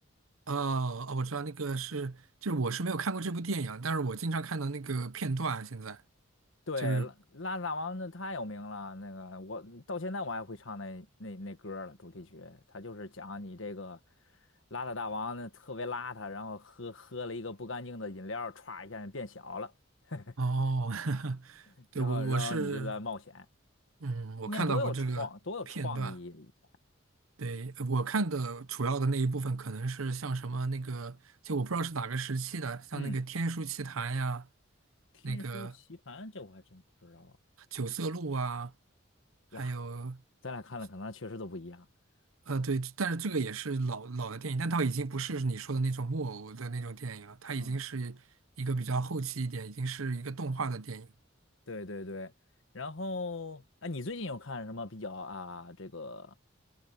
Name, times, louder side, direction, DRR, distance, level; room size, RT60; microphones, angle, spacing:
voice 1, 0.5-6.0 6.8-7.1 20.4-21.7 21.9-22.9 24.0-25.3 25.7-26.1 27.4-31.2 31.4-34.5 35.2-35.7 37.7-38.7 39.5-40.2 42.5-48.2 48.6-51.1, right 3 dB, 90° right, 0.9 m, -33 dB
voice 2, 6.7-14.0 14.7-19.7 20.1-20.3 21.8-23.5 24.4-26.5 32.9-33.2 35.1-37.3 39.5-39.8 40.4-41.9 47.5-47.8 51.7-52.3 52.7-56.3, left 3 dB, 70° left, 1.4 m, -39 dB
head